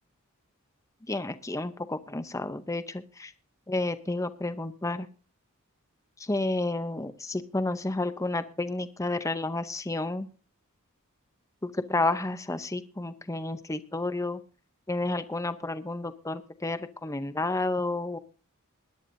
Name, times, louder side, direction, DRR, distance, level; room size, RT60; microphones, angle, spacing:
voice 1, 1.0-3.3 3.7-5.1 6.2-10.3 11.6-14.4 14.9-18.2, left 2 dB, 15° left, 11 dB, 0.6 m, -31 dB
21.5 x 11.0 x 2.6 m, 0.36 s
head